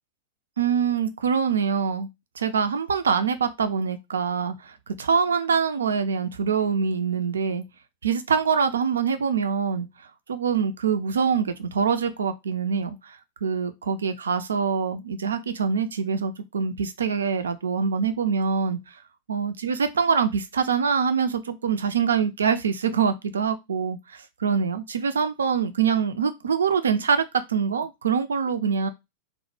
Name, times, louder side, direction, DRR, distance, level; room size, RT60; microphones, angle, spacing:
voice 1, 0.6-2.1 2.4-7.6 8.0-9.9 10.3-18.8 19.3-27.2 27.5-28.9, right 6 dB, 70° right, 0.3 m, -24 dB
2.0 x 2.0 x 3.1 m
figure-of-eight pair, 90°, 0 cm